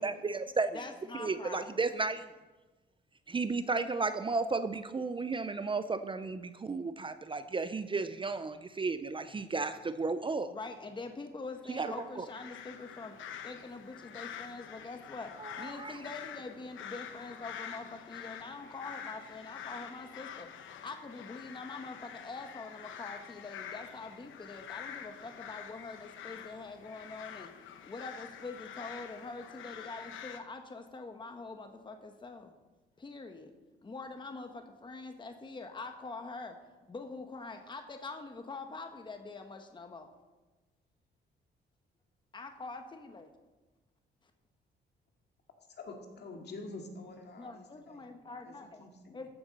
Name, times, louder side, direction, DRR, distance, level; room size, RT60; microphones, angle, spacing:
voice 1, 0.0-0.7 1.2-2.3 3.3-10.5 11.7-12.2 15.4-16.0, right 4 dB, 25° right, 11 dB, 0.6 m, -33 dB
voice 2, 0.7-1.7 10.5-13.1 13.4-20.5 20.8-27.5 27.8-32.5 33.0-33.5 33.8-36.6 36.9-40.1 42.3-43.3 47.4-48.8 49.1-49.3, left 3 dB, 25° left, 6 dB, 1.1 m, -44 dB
sound 1, 11.7-30.4, left 8 dB, 80° left, 1.0 m, -47 dB
voice 3, 45.8-48.1 48.4-49.3, left 2 dB, 55° left, 2 dB, 2.3 m, -47 dB
14.0 x 7.0 x 5.4 m, 1.2 s
cardioid pair, 90°, 20 cm